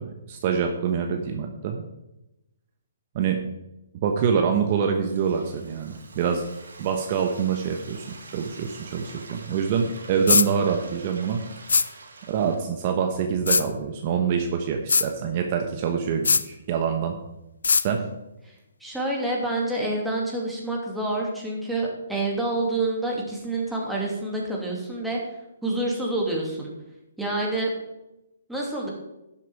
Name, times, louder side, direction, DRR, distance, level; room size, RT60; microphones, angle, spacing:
voice 1, 0.0-1.8 3.1-3.4 4.0-6.4 6.8-11.4 12.3-17.1 17.8-18.0, right 7 dB, 40° right, 3 dB, 1.2 m, -25 dB
Frying (food), 4.7-12.6, right 3 dB, 75° right, 2.2 m, -46 dB
sound 1, 10.3-10.5 11.7-11.9 13.5-13.6 14.9-15.1 16.2-16.4 17.6-17.8, left 5 dB, 75° left, 0.5 m, -19 dB
voice 2, 18.8-25.2 25.6-26.7 27.2-27.7 28.5-28.9, right 2 dB, 5° right, -3 dB, 2.6 m, -27 dB
11.5 x 7.4 x 4.8 m, 0.94 s
hypercardioid pair, 140°, 0 cm